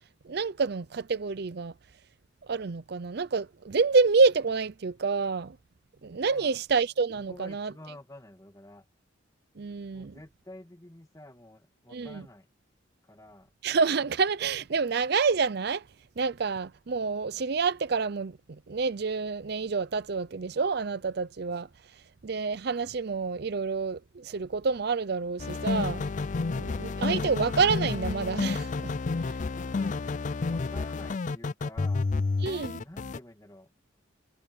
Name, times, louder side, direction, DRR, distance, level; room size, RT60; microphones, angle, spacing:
voice 1, 0.2-1.7 2.5-5.6 6.0-7.7 9.6-10.1 11.9-12.2 13.6-15.8 16.2-21.7 22.2-26.0 26.5-28.9 29.2-29.4 32.4-32.8, right 4 dB, 55° right, 0.5 m, -28 dB
voice 2, 6.2-6.6 7.3-8.9 9.9-12.5 13.0-13.5 29.8-30.0 30.4-32.1 32.8-33.7, left 1 dB, 15° left, 2.3 m, -49 dB
sound 1, 25.4-33.2, left 3 dB, 40° left, 0.4 m, -30 dB
head